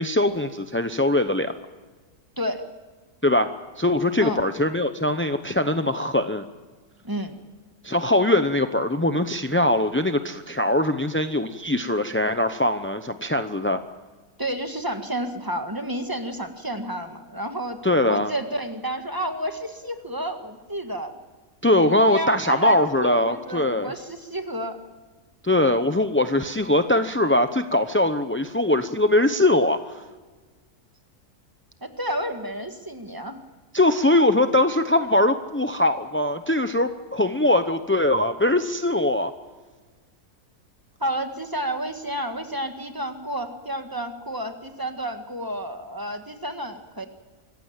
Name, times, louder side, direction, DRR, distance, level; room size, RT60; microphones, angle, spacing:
voice 1, 0.0-1.5 3.2-3.5 3.8-6.5 7.8-13.8 17.8-18.3 21.6-23.9 25.4-30.0 33.7-39.3, left 1 dB, 15° left, 8 dB, 0.4 m, -21 dB
voice 2, 2.4-2.7 4.2-4.4 7.0-7.4 14.4-17.8 18.0-21.1 21.8-24.8 31.8-33.4 41.0-47.1, right 1 dB, 15° right, 6 dB, 1.8 m, -30 dB
26.0 x 15.5 x 8.9 m, 1.3 s
omnidirectional pair, 1.6 m